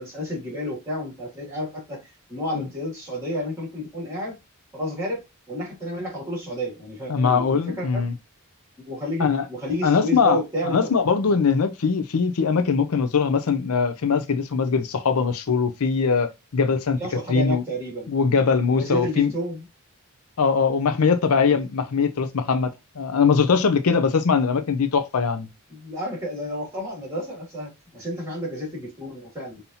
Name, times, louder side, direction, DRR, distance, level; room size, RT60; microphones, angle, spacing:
voice 1, 0.0-4.4 4.7-8.1 8.9-10.9 11.2-11.4 17.0-18.1 18.7-19.6 21.5-21.6 25.7-29.6, equal, 15° right, 2.4 m, -31 dB
voice 2, 7.1-8.1 9.2-9.4 9.8-10.4 10.7-17.0 17.3-17.6 18.1-19.3 20.4-25.5, left 5 dB, 85° left, 0.6 m, -21 dB
5.4 x 2.8 x 2.7 m
head